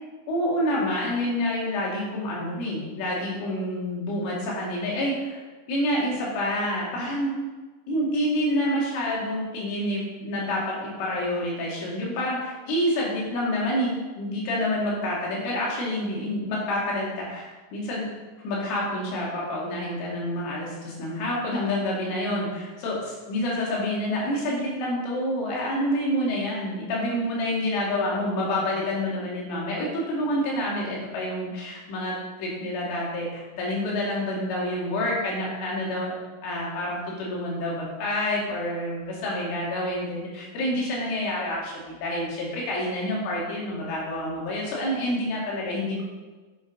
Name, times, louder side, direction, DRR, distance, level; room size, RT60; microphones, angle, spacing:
voice 1, 0.3-5.4 5.7-7.4 7.9-18.1 18.4-46.0, left 1 dB, 80° left, -4 dB, 5.2 m, -28 dB
9.3 x 8.7 x 5.2 m, 1.3 s
omnidirectional pair, 5.6 m